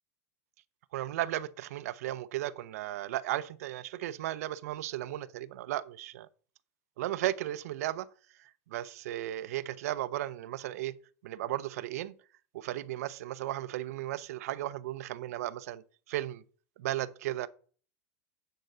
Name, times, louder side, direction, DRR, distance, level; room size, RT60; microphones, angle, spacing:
voice 1, 0.9-6.3 7.0-8.1 8.7-11.0 11.2-12.1 12.5-16.4 16.8-17.5, right 14 dB, 80° right, 0.5 m, -35 dB
9.3 x 3.8 x 5.5 m
hypercardioid pair, 105°, 8 cm